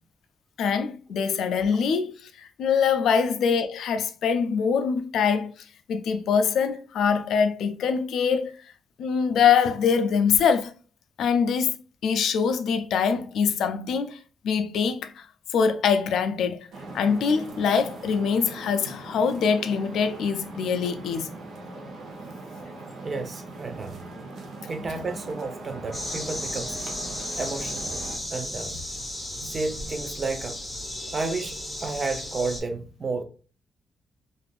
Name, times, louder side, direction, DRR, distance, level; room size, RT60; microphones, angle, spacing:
voice 1, 0.6-5.5 5.9-8.5 9.0-10.7 11.2-11.7 12.0-14.2 14.4-15.3 15.5-16.6 16.9-21.3 29.4-29.5, left 6 dB, 85° left, 0.4 m, -24 dB
sound 1, 16.7-28.2, right 2 dB, 65° right, 0.9 m, -40 dB
voice 2, 23.0-24.1 24.7-26.8 27.4-28.0 28.3-28.8 29.4-30.6 31.1-33.2, right 3 dB, 30° right, 0.4 m, -32 dB
sound 2, 25.9-32.6, left 1 dB, 5° left, 0.8 m, -34 dB
3.4 x 2.5 x 2.4 m
wide cardioid pair, 170°, 0 cm